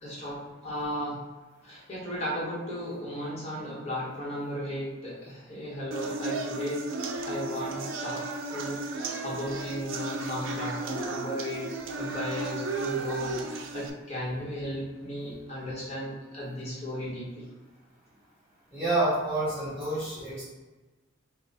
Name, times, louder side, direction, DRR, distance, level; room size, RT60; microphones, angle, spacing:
voice 1, 0.0-1.2 1.6-6.8 7.2-8.2 8.5-11.6 12.0-17.4, equal, 30° left, -7 dB, 1.2 m, -35 dB
sound 1, 5.9-13.9, right 3 dB, 75° right, 0.4 m, -34 dB
voice 2, 18.7-20.4, right 2 dB, 15° right, -13 dB, 0.9 m, -28 dB
3.5 x 2.4 x 4.0 m, 1.2 s
head